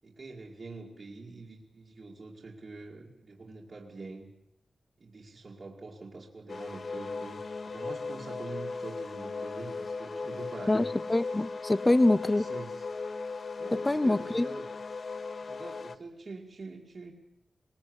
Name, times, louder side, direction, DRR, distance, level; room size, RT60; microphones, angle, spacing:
voice 1, 0.0-4.3 5.0-10.9 12.1-12.8 13.6-14.7 15.4-17.1, right 3 dB, 40° right, -3 dB, 2.4 m, -45 dB
sound 1, 6.5-16.0, left 4 dB, 50° left, 0.9 m, -37 dB
voice 2, 10.7-12.5 13.7-14.5, left 2 dB, 20° left, 16 dB, 0.8 m, -25 dB
21.0 x 20.5 x 8.2 m, 0.80 s
wide cardioid pair, 145°, 0 cm